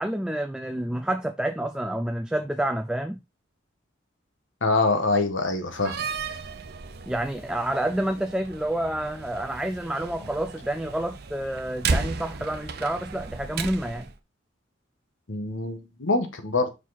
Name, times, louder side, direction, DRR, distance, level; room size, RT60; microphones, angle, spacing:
voice 1, 0.0-3.2 7.1-14.1, right 1 dB, 5° right, 0.3 m, -29 dB
voice 2, 4.6-6.0 15.3-16.7, left 3 dB, 80° left, 1.4 m, -25 dB
Slam, 5.7-14.1, right 4 dB, 55° right, 0.7 m, -34 dB
5.6 x 4.8 x 4.1 m
head